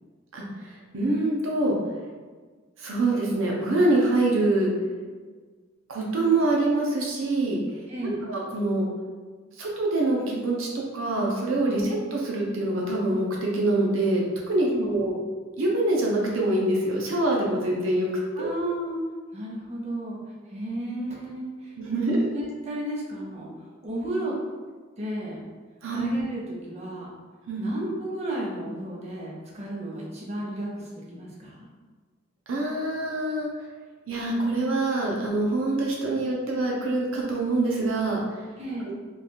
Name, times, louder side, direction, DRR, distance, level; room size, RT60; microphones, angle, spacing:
voice 1, 0.3-1.8 2.8-4.7 5.9-7.6 8.0-8.9 9.6-15.1 15.6-18.1 18.4-18.5 21.8-22.2 25.8-26.0 27.5-27.7 32.5-33.5 34.1-38.2 38.8-38.9, right 2 dB, 80° right, -2 dB, 0.7 m, -25 dB
voice 2, 7.9-8.3 11.8-12.0 14.7-15.2 18.3-19.0 19.3-20.2 20.5-21.8 22.3-24.4 25.0-25.5 25.9-27.1 27.6-31.7 38.6-38.9, right 1 dB, 35° right, -4 dB, 0.8 m, -33 dB
3.2 x 2.4 x 4.2 m, 1.4 s
head